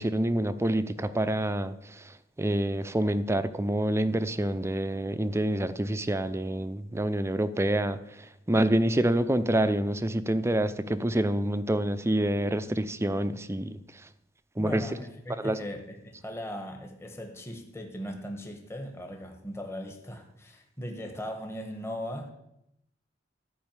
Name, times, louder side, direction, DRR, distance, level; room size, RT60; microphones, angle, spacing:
voice 1, 0.0-2.0 2.4-8.0 8.5-13.8 14.6-14.8 15.4-15.6, right 1 dB, 15° right, 12 dB, 0.6 m, -27 dB
voice 2, 14.6-22.3, equal, 15° left, 3 dB, 1.3 m, -38 dB
14.0 x 5.4 x 8.9 m, 0.81 s
head